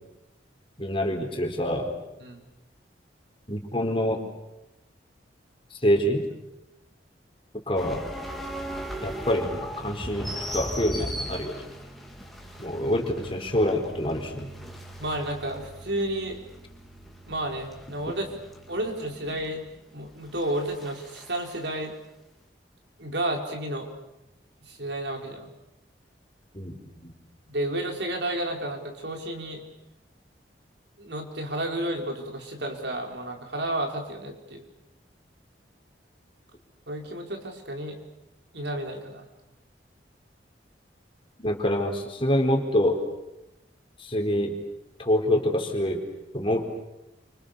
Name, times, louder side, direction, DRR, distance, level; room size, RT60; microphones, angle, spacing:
voice 1, 0.8-1.9 3.5-4.2 5.7-6.2 7.7-8.0 9.0-11.6 12.6-14.5 26.5-27.1 41.4-43.0 44.0-44.5 45.0-46.0 46.3-46.6, equal, 30° left, 3 dB, 4.4 m, -26 dB
sound 1, 7.8-21.6, equal, ahead, 3.6 m, -39 dB
voice 2, 15.0-16.4 17.3-18.3 18.7-19.6 19.9-21.9 23.0-23.9 24.6-25.5 27.5-29.6 31.0-34.7 36.9-38.0 38.5-39.3, right 1 dB, 75° right, 2 dB, 5.0 m, -31 dB
29.5 x 27.0 x 7.0 m, 0.94 s
head